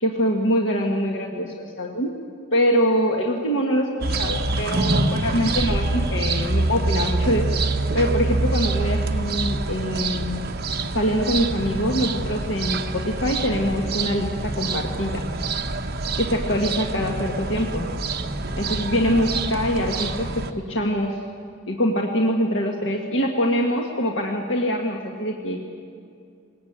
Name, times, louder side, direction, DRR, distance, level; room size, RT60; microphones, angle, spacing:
voice 1, 0.0-2.2 2.5-7.6 7.9-10.4 10.9-15.2 16.2-17.9 18.6-21.2 21.7-25.6, equal, 65° left, 1 dB, 1.6 m, -24 dB
sound 1, 4.0-20.5, right 3 dB, 50° right, 1.1 m, -26 dB
21.0 x 18.5 x 8.8 m, 2.4 s
head